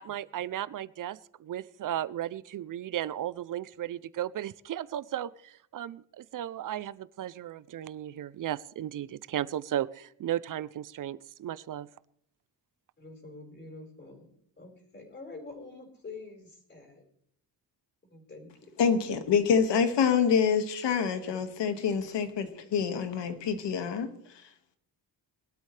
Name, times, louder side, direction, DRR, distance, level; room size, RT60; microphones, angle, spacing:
voice 1, 0.0-11.9, right 11 dB, 50° right, 18 dB, 0.5 m, -35 dB
voice 2, 13.0-14.3 14.6-17.0 18.1-18.7, left 3 dB, 25° left, 0 dB, 4.4 m, -46 dB
voice 3, 18.8-24.1, left 6 dB, 75° left, 8 dB, 1.9 m, -26 dB
21.5 x 12.5 x 3.3 m, 0.68 s
wide cardioid pair, 170°, 43 cm